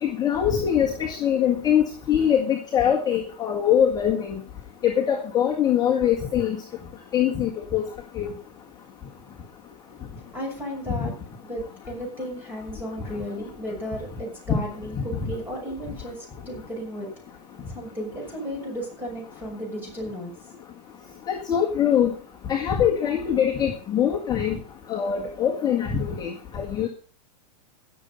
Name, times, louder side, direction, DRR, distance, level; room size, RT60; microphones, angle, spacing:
voice 1, 0.0-4.4 4.8-6.6 7.1-7.8 8.2-8.3 14.5-14.6 21.3-22.1 22.5-24.6 24.9-26.3 26.5-26.9, left 9 dB, 20° left, -2 dB, 1.7 m, -23 dB
voice 2, 10.3-11.1 11.4-17.1 17.7-20.3, equal, 10° right, -1 dB, 6.4 m, -34 dB
17.5 x 7.1 x 5.3 m, 0.40 s
supercardioid pair, 155°, 21 cm